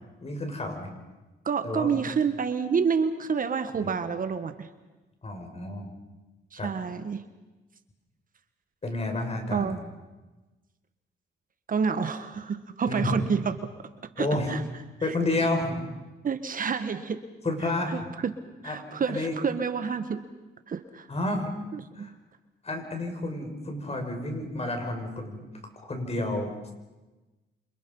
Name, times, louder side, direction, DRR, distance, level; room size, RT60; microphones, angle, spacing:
voice 1, 0.2-0.9 1.6-2.0 3.8-3.9 5.2-5.9 6.6-6.7 8.8-9.8 12.9-13.2 14.2-14.5 15.0-15.8 17.4-18.1 18.6-18.8 19.1-19.4 21.1-21.5 22.0-22.1 22.6-25.4 25.8-26.7, left 2 dB, 30° left, 4 dB, 6.2 m, -30 dB
voice 2, 1.4-4.7 6.5-7.2 9.5-9.8 11.7-13.6 14.2-14.6 16.2-17.2 17.9-18.3 18.6-20.2 20.7-21.1 21.7-22.1, right 6 dB, 45° right, 10 dB, 1.4 m, -28 dB
28.5 x 26.5 x 5.5 m, 1.1 s
cardioid pair, 90°, 20 cm